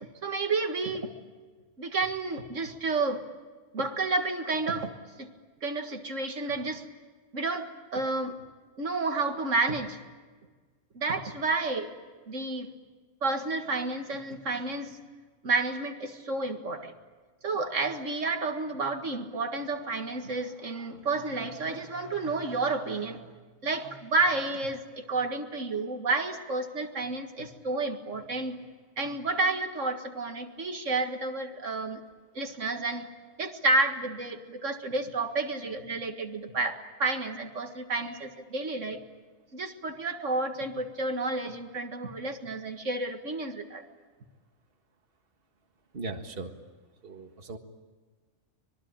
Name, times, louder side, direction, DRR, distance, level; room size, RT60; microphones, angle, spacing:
voice 1, 0.2-1.1 1.8-3.2 3.7-4.9 5.2-5.3 5.6-6.8 7.3-8.4 8.8-10.0 10.9-11.9 12.3-12.7 13.2-15.0 15.4-16.9 17.4-23.2 23.6-28.6 29.0-32.0 32.4-33.1 33.4-39.0 39.5-43.8, right 3 dB, 75° right, 5 dB, 2.1 m, -30 dB
voice 2, 45.9-46.5 47.0-47.6, right 3 dB, 50° right, 4 dB, 1.9 m, -38 dB
25.5 x 22.0 x 8.9 m, 1.4 s
omnidirectional pair, 1.3 m